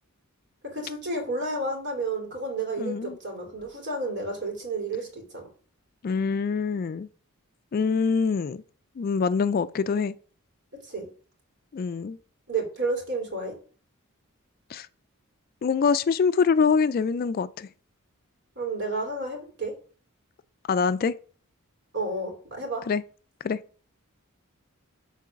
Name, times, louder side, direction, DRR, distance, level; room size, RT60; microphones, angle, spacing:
voice 1, 0.6-5.5 10.8-11.1 12.5-13.5 18.6-19.7 21.9-22.8, right 2 dB, 55° right, 2.7 m, -31 dB
voice 2, 2.8-3.2 6.0-7.1 7.7-8.6 9.0-10.1 11.7-12.2 14.7-14.9 15.6-17.7 20.7-21.1 22.9-23.0 23.4-23.6, left 5 dB, 40° left, 0.3 m, -24 dB
7.3 x 3.9 x 5.7 m
head